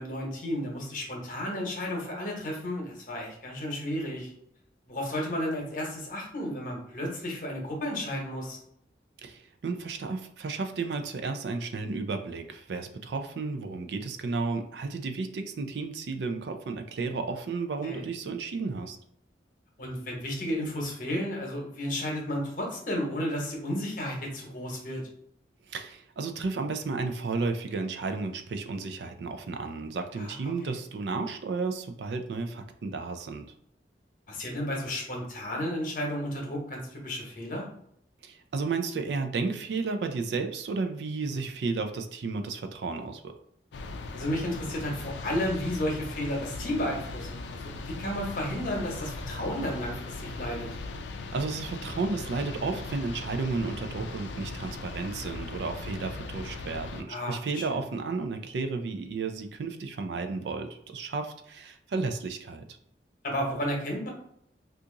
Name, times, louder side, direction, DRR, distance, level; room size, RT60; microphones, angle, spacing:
voice 1, 0.0-4.3 4.9-8.6 17.8-18.0 19.8-25.0 30.2-30.3 30.6-30.7 34.3-37.7 41.3-41.4 44.1-50.7 57.1-57.8 63.2-64.1, equal, 45° left, 0 dB, 0.9 m, -33 dB
voice 2, 9.2-19.0 25.7-33.5 38.2-43.3 51.3-62.6, right 4 dB, 70° right, 6 dB, 0.4 m, -33 dB
sound 1, 43.7-57.0, left 3 dB, 80° left, 0.4 m, -39 dB
2.8 x 2.5 x 3.7 m, 0.71 s
head